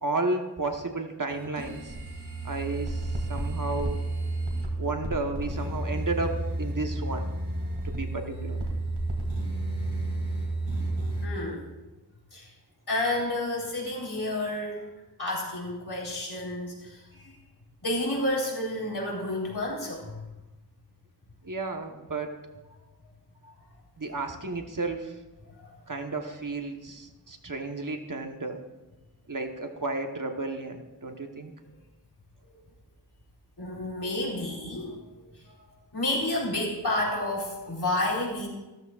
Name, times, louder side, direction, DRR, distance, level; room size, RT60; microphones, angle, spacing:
voice 1, 0.0-1.9 2.4-4.0 4.8-7.3 7.8-8.6 21.4-22.4 24.0-25.2 25.9-28.6 29.3-31.5, right 3 dB, 50° right, 4 dB, 1.2 m, -32 dB
sound 1, 1.3-11.3, right 2 dB, 85° right, 2.2 m, -31 dB
voice 2, 11.2-11.7 12.3-12.5 12.9-14.8 15.2-17.4 17.8-20.3 25.6-25.7 33.6-35.0 35.9-38.5, left 1 dB, 70° left, -3 dB, 3.9 m, -30 dB
15.0 x 13.5 x 2.4 m, 1.1 s
wide cardioid pair, 60°, 40 cm